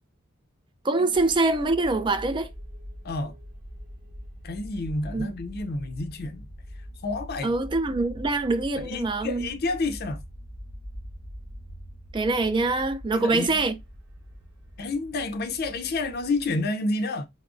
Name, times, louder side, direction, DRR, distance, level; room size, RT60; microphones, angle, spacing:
voice 1, 0.8-2.5 5.1-5.3 7.4-9.5 12.1-13.7, right 2 dB, 25° right, 0.4 m, -24 dB
sound 1, 1.1-16.6, equal, 60° right, 0.9 m, -43 dB
voice 2, 4.4-6.5 7.0-7.5 8.8-10.2 13.1-13.6 14.8-17.3, left 3 dB, 50° left, 0.5 m, -29 dB
3.6 x 2.0 x 2.4 m
head